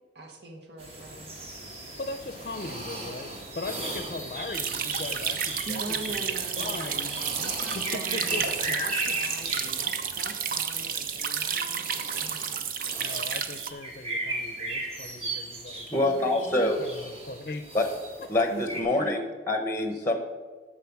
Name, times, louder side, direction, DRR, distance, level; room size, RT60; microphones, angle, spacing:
voice 1, 0.1-1.4 5.7-12.7 16.0-16.7 18.5-19.2, right 2 dB, 75° right, 2 dB, 1.3 m, -42 dB
sound 1, 0.8-18.8, right 1 dB, 35° right, 1.6 m, -37 dB
voice 2, 2.0-7.2 7.7-8.8 9.0-9.2 9.7-9.8 13.0-16.1 16.8-17.6 18.2-18.4, left 2 dB, 45° left, 9 dB, 0.5 m, -39 dB
sound 2, 4.5-13.7, right 7 dB, 50° right, 0.6 m, -31 dB
voice 3, 15.9-16.8 17.7-17.9 18.3-20.2, left 2 dB, 15° left, 6 dB, 0.8 m, -25 dB
9.1 x 6.5 x 5.9 m, 1.4 s
head